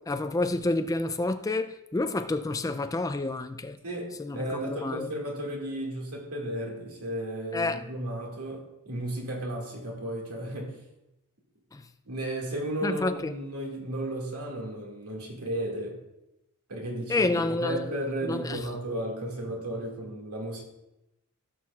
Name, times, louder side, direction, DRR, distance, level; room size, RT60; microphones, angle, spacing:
voice 1, 0.0-3.8 4.2-5.1 7.5-7.8 11.7-11.8 12.8-13.1 17.1-17.9 18.2-18.6, left 2 dB, 15° left, 0.3 m, -29 dB
voice 2, 3.8-10.8 12.1-16.0 16.7-20.6, right 1 dB, 90° right, 2.1 m, -34 dB
17.0 x 6.4 x 2.4 m
head